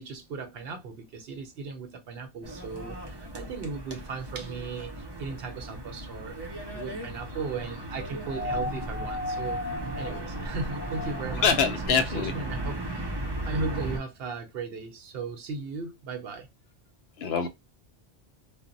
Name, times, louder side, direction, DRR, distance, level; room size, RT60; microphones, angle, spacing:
voice 1, 0.0-6.4 6.7-9.6 10.0-11.8 12.1-13.1 13.4-16.5, right 4 dB, 65° right, 0.8 m, -37 dB
sound 1, 2.4-14.0, right 1 dB, 35° right, 0.4 m, -36 dB
sound 2, 8.2-11.5 12.9-13.0, left 2 dB, 30° left, 0.3 m, -35 dB
voice 2, 11.4-12.4 17.2-17.5, left 6 dB, 70° left, 0.8 m, -24 dB
2.0 x 2.0 x 3.7 m
omnidirectional pair, 1.1 m